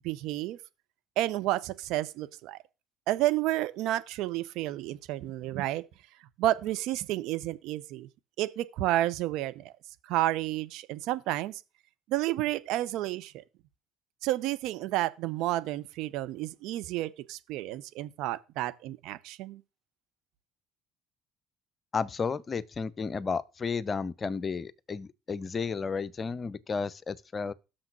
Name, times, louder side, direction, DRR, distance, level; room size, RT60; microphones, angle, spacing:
voice 1, 0.0-0.6 1.2-2.6 3.1-5.8 6.4-8.1 8.4-9.7 10.0-11.6 12.1-13.3 14.2-19.6, right 15 dB, 65° right, 0.7 m, -31 dB
voice 2, 21.9-27.5, left 5 dB, 35° left, 0.6 m, -32 dB
6.6 x 5.8 x 6.0 m
hypercardioid pair, 55°, 0 cm